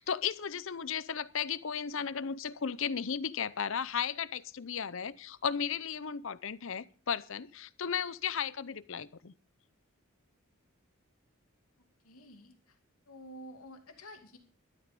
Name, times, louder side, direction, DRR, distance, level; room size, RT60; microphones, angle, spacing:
voice 1, 0.0-9.3, left 7 dB, 65° left, 19 dB, 0.6 m, -35 dB
voice 2, 12.0-12.8 13.1-14.4, equal, 85° left, 5 dB, 2.6 m, -50 dB
12.5 x 12.5 x 5.2 m, 0.40 s
head